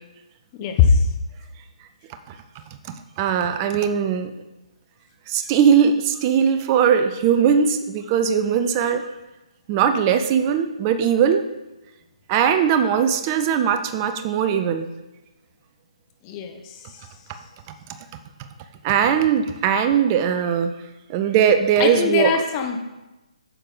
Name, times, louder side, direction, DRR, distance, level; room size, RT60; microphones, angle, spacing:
voice 1, 0.5-1.0 16.2-16.6 21.8-22.8, left 6 dB, 25° left, 4 dB, 1.0 m, -20 dB
voice 2, 3.2-4.3 5.3-9.1 9.7-11.4 12.3-14.9 18.8-20.7 21.1-22.3, right 7 dB, 25° right, 8 dB, 0.6 m, -19 dB
9.0 x 6.5 x 4.0 m, 1.0 s
figure-of-eight pair, 140°, 4 cm